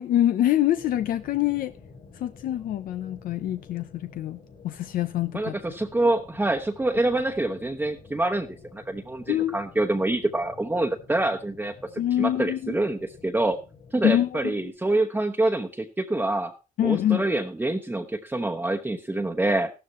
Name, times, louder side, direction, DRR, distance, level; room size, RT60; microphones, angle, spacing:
voice 1, 0.0-1.7 2.2-4.4 4.6-5.6 9.3-9.6 12.0-12.7 14.0-14.4 16.8-17.2, left 12 dB, 85° left, 0.7 m, -25 dB
sound 1, 0.7-14.7, left 4 dB, 55° left, 4.6 m, -50 dB
voice 2, 5.3-13.6 13.9-16.5 16.8-19.7, right 2 dB, 15° right, 1.0 m, -26 dB
14.0 x 12.5 x 3.1 m
cardioid pair, 90°, 14 cm